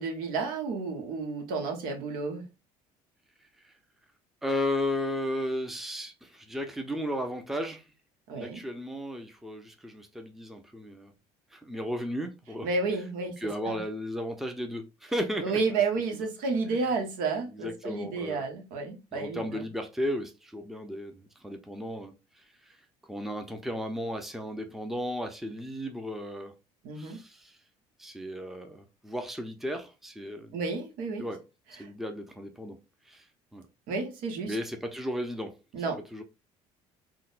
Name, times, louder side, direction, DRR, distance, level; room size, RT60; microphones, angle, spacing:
voice 1, 0.0-2.4 8.3-8.6 12.6-13.4 13.6-13.8 15.4-19.6 26.8-27.2 30.5-31.2 33.9-34.5 35.7-36.0, right 4 dB, 75° right, 1.0 m, -31 dB
voice 2, 4.4-7.8 8.3-11.1 11.5-12.7 13.4-15.6 16.7-16.8 17.5-18.5 19.1-22.1 22.6-22.8 23.1-26.5 27.0-27.6 28.0-30.6 31.2-31.4 31.7-32.8 33.1-33.2 33.5-33.7 34.5-35.6 36.1-36.2, left 1 dB, ahead, 0.6 m, -34 dB
3.8 x 2.1 x 2.5 m
supercardioid pair, 90°, 15 cm